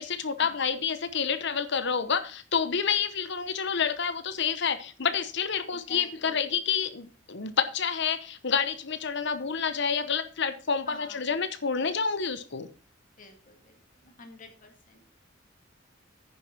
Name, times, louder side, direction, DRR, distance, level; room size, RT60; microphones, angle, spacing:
voice 1, 0.0-12.7, left 6 dB, 65° left, 11 dB, 0.9 m, -29 dB
voice 2, 5.7-6.6 10.8-11.3 13.2-15.0, left 3 dB, 45° left, 4 dB, 2.2 m, -48 dB
9.8 x 7.0 x 5.9 m, 0.36 s
head